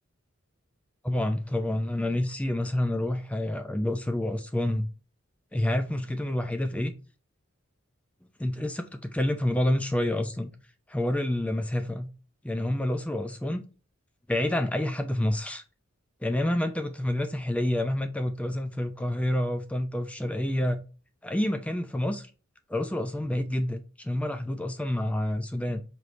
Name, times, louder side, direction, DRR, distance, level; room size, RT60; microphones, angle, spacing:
voice 1, 1.0-4.9 5.5-6.9 8.4-8.8 9.1-10.5 10.9-12.1 12.4-13.6 14.3-15.6 16.2-20.8 21.2-22.3 22.7-25.8, left 1 dB, 5° left, 0.3 m, -28 dB
4.8 x 3.1 x 2.5 m
head